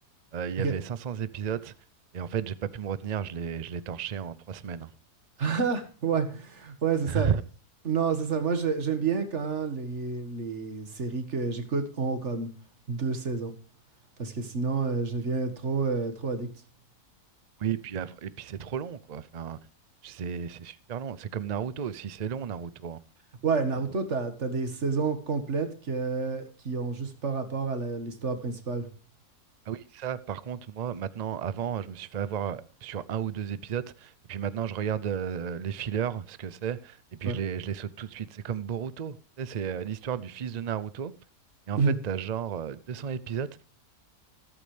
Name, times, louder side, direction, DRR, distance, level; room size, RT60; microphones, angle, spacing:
voice 1, 0.3-1.7 2.1-4.9 7.1-7.4 17.6-19.6 20.0-23.0 29.7-41.1 41.7-43.6, right 8 dB, 90° right, 0.3 m, -33 dB
voice 2, 5.4-7.3 7.8-12.5 12.9-13.5 14.2-16.5 23.4-28.9 37.3-37.4 41.8-42.0, right 5 dB, 45° right, 2.0 m, -29 dB
14.0 x 13.0 x 3.3 m
omnidirectional pair, 1.7 m